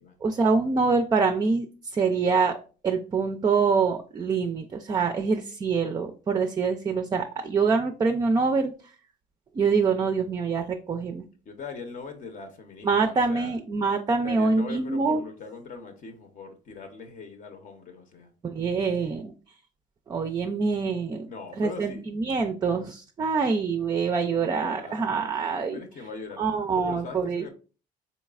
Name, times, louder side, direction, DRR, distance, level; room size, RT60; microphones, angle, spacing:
voice 1, 0.2-1.7 1.9-2.5 2.8-8.7 9.5-11.2 12.8-15.2 18.4-19.3 20.1-21.3 21.6-25.8 26.4-27.4, right 4 dB, 25° right, 0.4 m, -25 dB
voice 2, 11.4-13.6 14.2-18.3 21.3-22.0 24.4-26.4 26.7-27.5, left 4 dB, 50° left, 0.7 m, -41 dB
4.0 x 3.1 x 2.3 m
cardioid pair, 110°, 17 cm